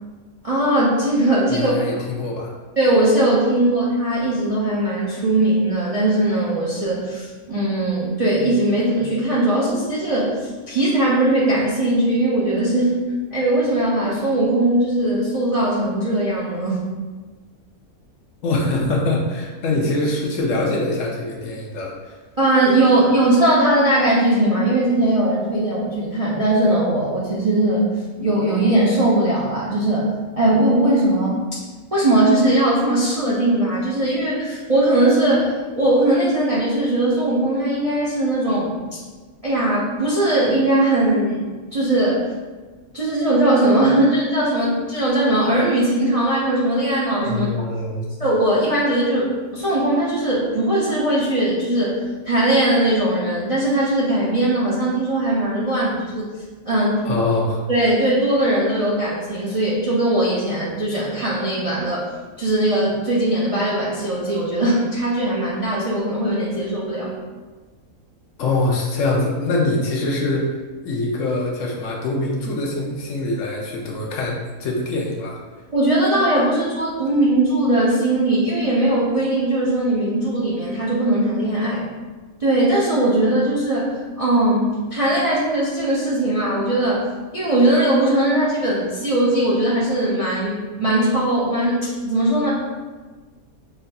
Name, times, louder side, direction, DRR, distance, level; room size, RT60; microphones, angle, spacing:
voice 1, 0.4-2.1 2.8-12.9 13.3-16.8 19.7-19.8 22.4-27.8 28.2-31.4 31.9-39.0 39.4-41.5 41.7-42.3 42.9-47.5 48.2-52.0 52.2-56.2 56.7-57.0 57.7-62.1 62.4-67.1 75.7-81.8 82.4-87.1 87.3-92.5, right 1 dB, 55° right, -7 dB, 0.4 m, -19 dB
voice 2, 1.5-2.5 18.4-22.2 47.2-48.1 55.7-55.8 57.0-57.6 68.4-70.5 70.8-75.4, left 2 dB, 65° left, -1 dB, 0.9 m, -23 dB
5.4 x 2.6 x 2.2 m, 1.3 s
omnidirectional pair, 1.5 m